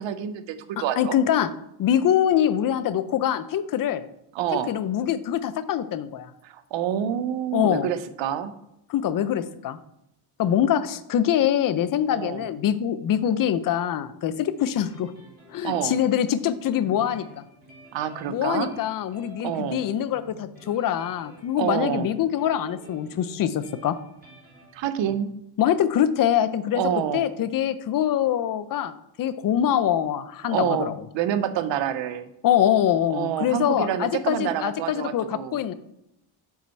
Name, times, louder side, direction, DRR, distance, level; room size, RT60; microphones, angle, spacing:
voice 1, 0.0-1.2 4.3-4.7 6.4-8.5 12.1-12.4 15.6-15.9 17.9-18.7 19.4-19.8 21.6-22.1 24.7-25.3 26.7-27.2 30.5-32.3 33.1-35.6, right 10 dB, 85° right, 12 dB, 0.8 m, -27 dB
voice 2, 1.0-1.5 1.8-4.0 4.7-6.3 7.5-7.9 8.9-9.8 10.4-15.1 15.5-17.4 18.3-24.0 25.6-26.8 27.1-28.9 29.2-30.9 32.4-35.7, left 10 dB, 50° left, 13 dB, 0.5 m, -24 dB
sound 1, 14.6-24.8, right 1 dB, 20° right, 3.1 m, -50 dB
7.2 x 6.0 x 4.3 m, 0.82 s
cardioid pair, 165°, 44 cm